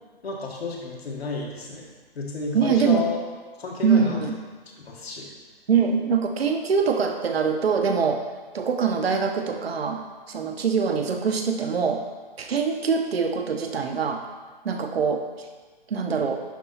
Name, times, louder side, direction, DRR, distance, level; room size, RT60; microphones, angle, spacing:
voice 1, 0.2-1.9 2.2-3.2 3.6-4.2 4.9-5.3, left 4 dB, 85° left, -2 dB, 2.2 m, -31 dB
voice 2, 2.5-3.0 3.8-4.4 5.7-8.2 8.5-10.0 10.3-12.0 12.4-14.2 14.6-15.3 15.9-16.4, right 6 dB, 85° right, 4 dB, 1.1 m, -23 dB
11.0 x 4.0 x 4.4 m, 1.4 s
hypercardioid pair, 180°, 30 cm